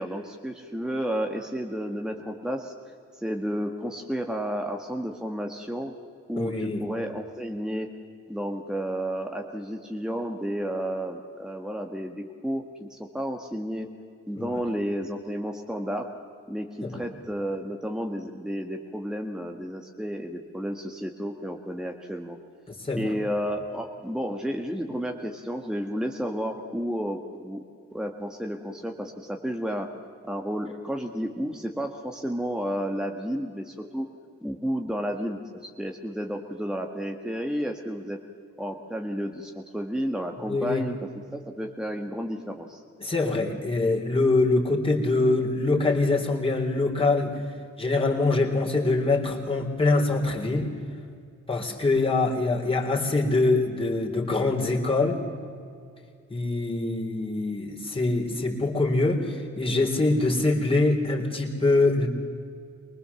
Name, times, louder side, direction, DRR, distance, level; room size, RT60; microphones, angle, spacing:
voice 1, 0.0-2.7 3.1-5.9 6.3-7.9 8.3-13.9 14.3-16.1 16.5-22.4 22.9-27.6 27.9-29.9 30.2-34.1 34.4-38.2 38.6-41.0 41.6-42.8, equal, ahead, 3 dB, 1.6 m, -31 dB
voice 2, 6.4-6.8 14.4-14.6 16.8-17.0 22.7-23.1 40.4-40.8 43.0-47.4 47.8-50.7 51.5-55.2 56.3-62.1, left 2 dB, 20° left, -1 dB, 3.7 m, -24 dB
24.0 x 19.5 x 7.1 m, 2.4 s
cardioid pair, 80°, 29 cm